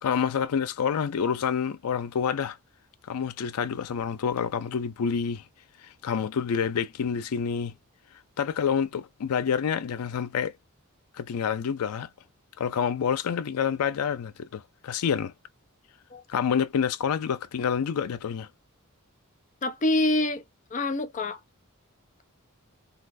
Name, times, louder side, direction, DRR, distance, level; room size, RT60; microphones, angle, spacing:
voice 1, 0.0-2.6 3.1-5.4 5.8-7.7 8.4-10.5 11.1-12.1 12.6-15.3 16.3-18.5, left 7 dB, 85° left, 0.4 m, -28 dB
voice 2, 19.6-20.4 20.7-21.4, left 1 dB, 35° left, 0.6 m, -26 dB
4.0 x 2.5 x 2.5 m
head